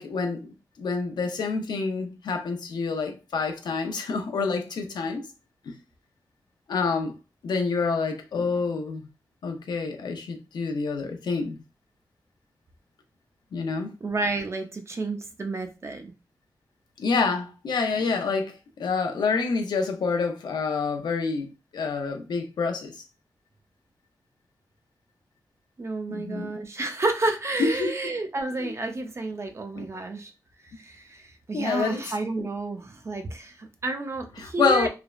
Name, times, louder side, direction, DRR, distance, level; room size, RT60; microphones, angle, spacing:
voice 1, 0.0-5.3 5.7-5.8 6.7-7.1 7.4-9.1 9.4-11.6 13.5-13.9 17.0-23.0 26.1-26.5 27.6-27.9 28.6-28.7 29.7-29.9 31.5-32.0 34.4-34.9, left 4 dB, 90° left, 0.5 m, -27 dB
voice 2, 14.0-16.1 25.8-30.3 30.8-34.9, right 2 dB, 40° right, 0.5 m, -30 dB
3.2 x 2.0 x 2.3 m
wide cardioid pair, 80°, 7 cm